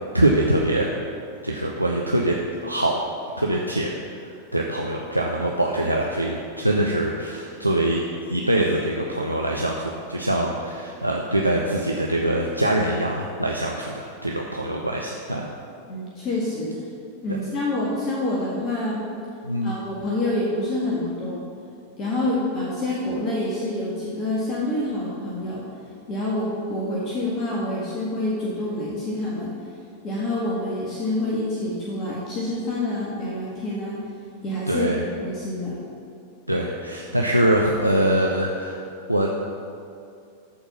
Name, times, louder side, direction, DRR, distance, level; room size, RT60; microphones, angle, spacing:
voice 1, 0.1-0.9 1.4-2.4 2.6-3.0 3.4-3.9 4.2-15.5 19.4-19.8 34.7-35.0 36.5-38.8 39.1-39.3, right 1 dB, 90° right, -1 dB, 0.7 m, -23 dB
voice 2, 15.9-16.7 17.2-19.0 19.6-21.4 22.0-25.6 26.1-29.5 30.0-34.0 34.4-35.8, left 1 dB, 35° left, -5 dB, 1.7 m, -27 dB
13.5 x 4.7 x 5.6 m, 2.5 s
figure-of-eight pair, 90°, 0 cm